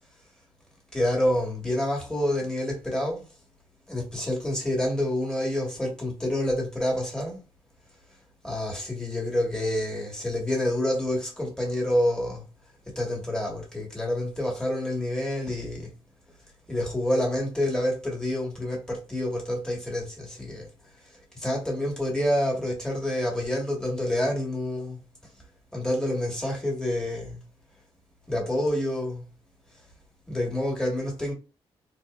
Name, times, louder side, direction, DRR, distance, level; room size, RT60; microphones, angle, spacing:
voice 1, 0.9-3.3 3.9-7.4 8.4-12.5 12.9-15.9 16.7-20.7 21.3-25.0 25.7-27.4 28.3-29.2 30.3-31.3, left 1 dB, 5° left, 1.4 m, -28 dB
4.1 x 2.7 x 2.4 m
cardioid pair, 135°, 10 cm